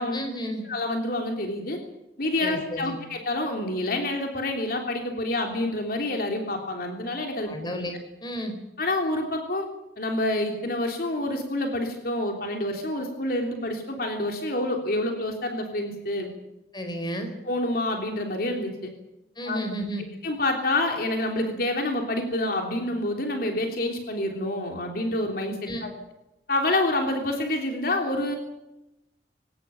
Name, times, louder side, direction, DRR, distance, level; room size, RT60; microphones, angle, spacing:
voice 1, 0.1-0.6 2.4-3.0 7.4-7.9 8.2-8.5 16.7-17.3 19.4-20.0 25.7-25.8, equal, 25° left, 5 dB, 4.7 m, -32 dB
voice 2, 0.6-1.8 2.2-7.5 8.8-9.7 10.0-16.3 17.4-18.9 19.5-19.6 20.2-25.9 26.5-28.4, left 1 dB, 55° left, 3 dB, 3.3 m, -27 dB
21.5 x 17.5 x 9.1 m, 0.92 s
head